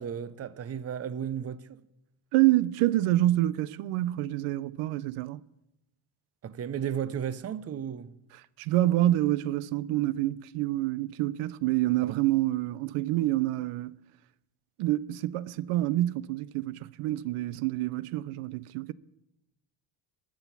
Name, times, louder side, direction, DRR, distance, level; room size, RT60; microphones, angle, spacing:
voice 1, 0.0-1.8 6.4-8.2 12.0-12.3, right 8 dB, 30° right, 0.6 m, -34 dB
voice 2, 2.3-5.4 8.6-14.0 14.8-18.9, right 15 dB, 90° right, 0.6 m, -27 dB
13.0 x 6.1 x 8.3 m
cardioid pair, 90°, 49 cm